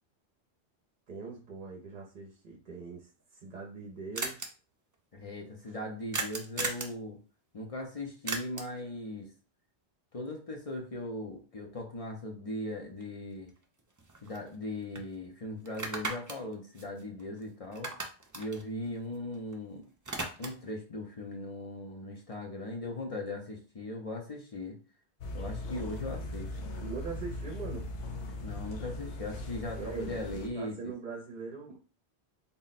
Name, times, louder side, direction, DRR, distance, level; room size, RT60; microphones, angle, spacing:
voice 1, 1.1-4.5 5.7-5.8 26.8-27.9 29.8-31.8, right 4 dB, 50° right, 0 dB, 0.7 m, -42 dB
sound 1, 3.2-3.3 3.5-3.6 3.8-3.9 4.2-4.5 6.1-7.0 8.3-8.8 13.0-13.1 13.5-14.6 15.0-15.1 15.7-17.4 17.7-19.6 19.8-20.7, right 3 dB, 30° right, 0.3 m, -37 dB
voice 2, 5.1-7.2 7.5-9.3 10.1-13.5 14.2-18.0 18.3-19.8 20.4-24.8 25.3-26.6 28.4-30.8, left 1 dB, 40° left, 1 dB, 0.6 m, -39 dB
sound 2, 25.2-30.5, left 1 dB, 90° left, 1.0 m, -39 dB
3.6 x 2.1 x 4.0 m, 0.35 s
omnidirectional pair, 1.1 m